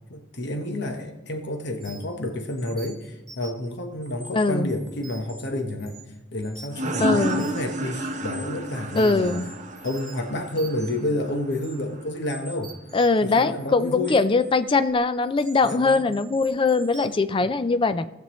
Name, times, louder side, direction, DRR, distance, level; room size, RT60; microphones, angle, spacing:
voice 1, 0.1-6.0 6.3-9.4 9.8-12.7 13.2-14.2 15.6-16.0 17.4-17.5, left 1 dB, 60° left, 4 dB, 1.1 m, -30 dB
sound 1, 1.8-2.2 2.5-3.7 4.0-5.4 5.8-6.1 6.4-7.7 8.0-8.4 9.0-11.0 11.5-11.7 12.3-14.5 15.2-17.1, right 2 dB, 5° left, 2.2 m, -45 dB
voice 2, 4.3-4.7 7.0-7.5 9.0-9.5 12.9-18.1, left 3 dB, 25° left, 12 dB, 0.4 m, -21 dB
sound 2, 6.7-12.1, right 1 dB, 40° right, 0.9 m, -31 dB
18.0 x 6.9 x 3.1 m, 1.0 s
head